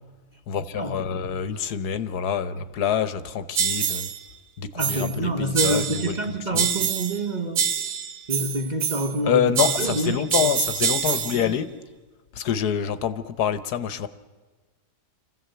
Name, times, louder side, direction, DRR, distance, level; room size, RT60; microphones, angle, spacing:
voice 1, 0.5-4.1 4.6-6.2 6.5-6.7 9.2-11.7 12.3-14.1, left 8 dB, 75° left, 1.4 m, -26 dB
sound 1, 3.6-4.2 4.8-5.2 5.6-6.2 6.6-7.2 7.6-9.2 9.6-11.5, right 7 dB, 70° right, 1.6 m, -26 dB
voice 2, 4.7-7.7 8.3-10.5, right 1 dB, 30° right, 1.2 m, -27 dB
26.5 x 15.0 x 7.8 m
omnidirectional pair, 1.7 m